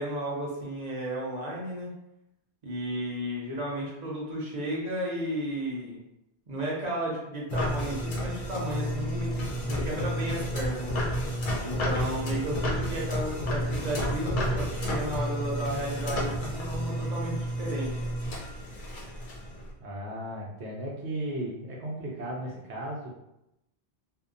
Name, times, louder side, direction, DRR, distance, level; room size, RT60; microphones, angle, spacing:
voice 1, 0.0-1.9 2.6-6.0 6.5-10.9 11.6-18.0, right 1 dB, 45° right, -4 dB, 0.7 m, -33 dB
sound 1, 7.5-19.7, equal, 55° left, 0.7 m, -31 dB
voice 2, 19.8-23.1, right 1 dB, 80° right, -3 dB, 0.9 m, -35 dB
2.7 x 2.2 x 2.4 m, 0.86 s
omnidirectional pair, 1.1 m